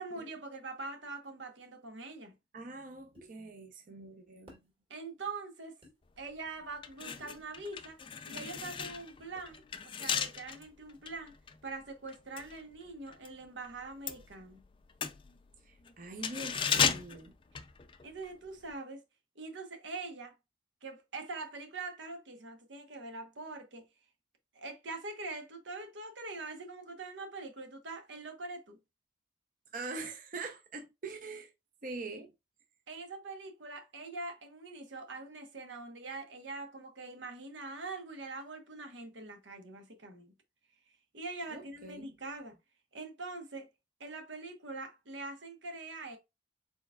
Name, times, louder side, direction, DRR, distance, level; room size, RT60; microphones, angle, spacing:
voice 1, 0.0-2.3 4.9-5.8 6.2-8.0 8.2-11.3 11.6-14.6 18.0-19.0 19.4-20.3 20.8-23.9 24.5-28.8 32.9-40.3 41.1-42.6 42.9-43.7 44.0-46.2, right 3 dB, 85° right, 1.0 m, -43 dB
voice 2, 2.5-4.6 15.6-17.3 29.7-31.5 31.8-32.3 41.5-42.1, right 3 dB, 45° right, 0.6 m, -43 dB
sound 1, 3.2-3.3 4.5-4.7 5.8-6.0 7.2-7.4, equal, 30° right, 1.8 m, -54 dB
sound 2, 6.2-6.3 6.7-13.4 13.6-18.3 18.6-18.7, left 7 dB, 30° left, 0.3 m, -36 dB
4.5 x 4.1 x 2.3 m
head